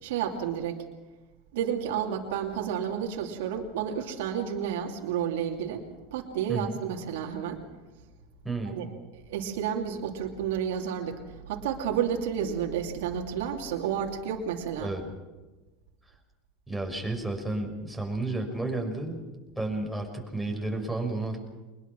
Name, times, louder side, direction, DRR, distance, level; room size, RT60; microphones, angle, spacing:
voice 1, 0.0-0.8 1.5-5.8 6.1-7.6 8.6-8.8 9.1-14.9, right 8 dB, 75° right, 1 dB, 2.8 m, -31 dB
voice 2, 8.4-8.8 14.8-15.0 16.7-19.2 19.6-21.4, right 2 dB, ahead, 1 dB, 6.1 m, -32 dB
23.5 x 21.0 x 6.1 m, 1.2 s
hypercardioid pair, 100°, 0 cm